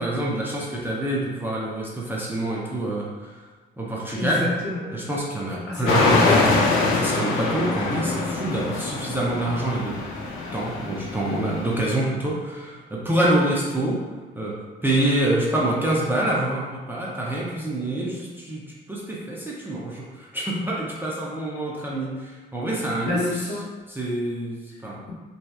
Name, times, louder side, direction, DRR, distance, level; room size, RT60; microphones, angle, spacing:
voice 1, 0.0-3.5 3.8-4.5 4.9-6.3 6.9-10.0 10.5-14.0 14.3-23.5 23.9-25.0, right 1 dB, 10° right, -5 dB, 0.4 m, -26 dB
voice 2, 4.2-4.9 5.7-6.7 23.0-23.6, left 2 dB, 60° left, -5 dB, 0.8 m, -28 dB
sound 1, 5.9-11.9, left 3 dB, 90° left, 0.4 m, -24 dB
2.6 x 2.1 x 2.2 m, 1.4 s
cardioid pair, 90°, 20 cm